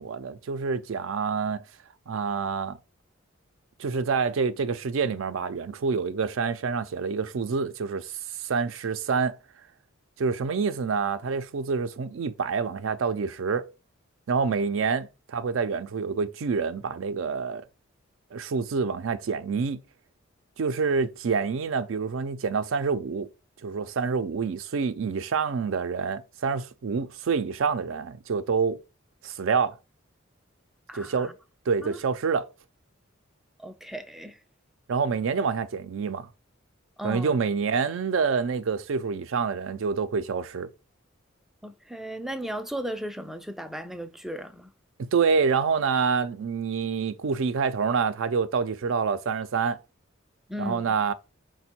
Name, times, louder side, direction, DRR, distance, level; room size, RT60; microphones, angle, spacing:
voice 1, 0.0-1.6 2.1-2.8 3.8-8.1 8.4-9.4 10.2-13.7 14.3-17.6 18.3-19.8 20.6-23.3 23.6-28.8 29.2-29.7 31.0-31.3 31.7-32.5 34.9-36.3 37.0-40.7 45.0-49.8 50.6-51.1, right 5 dB, 70° right, 0.4 m, -27 dB
voice 2, 30.9-31.3 31.8-32.0 33.6-34.4 37.0-37.4 41.6-44.7 50.5-51.0, equal, ahead, 0.3 m, -36 dB
5.1 x 2.2 x 4.2 m
head